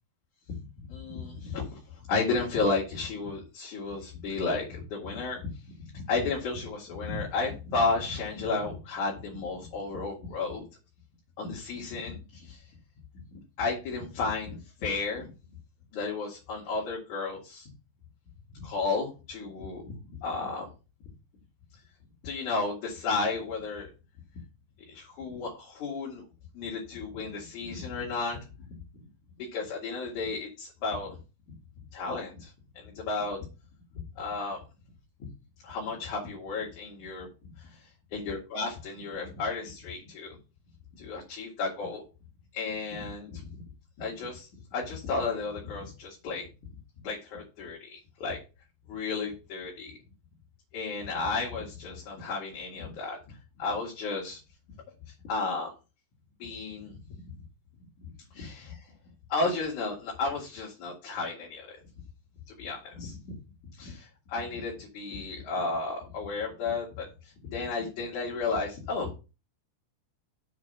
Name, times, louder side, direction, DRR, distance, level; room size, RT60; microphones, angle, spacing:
voice 1, 0.9-1.8 2.1-5.5 5.8-10.6 11.4-12.7 13.3-15.3 15.9-17.7 18.5-19.8 20.2-20.7 22.2-23.9 24.9-26.2 26.5-28.4 29.4-31.2 31.5-31.6 31.9-33.4 34.1-34.6 35.6-37.7 38.1-40.4 40.9-42.0 42.5-43.6 44.0-46.5 47.0-48.4 48.9-50.0 50.7-53.2 53.6-54.4 55.1-55.7 56.4-57.0 58.0-58.9 59.3-61.8 62.5-63.3 63.8-69.1, left 3 dB, 55° left, -3 dB, 3.0 m, -33 dB
7.2 x 4.6 x 7.0 m, 0.30 s
omnidirectional pair, 4.6 m